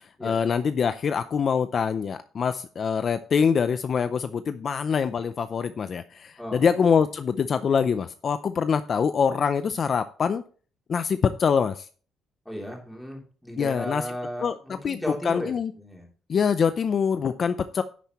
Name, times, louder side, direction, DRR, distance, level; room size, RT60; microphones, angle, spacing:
voice 1, 0.2-10.4 10.9-11.9 13.6-14.0 14.4-14.5 14.8-15.0 15.2-15.7 16.3-17.8, left 6 dB, 40° left, 11 dB, 0.5 m, -24 dB
voice 2, 6.4-6.7 7.0-7.1 12.4-16.1, equal, ahead, -1 dB, 3.2 m, -35 dB
10.5 x 9.2 x 3.0 m, 0.40 s
cardioid pair, 155°, 0 cm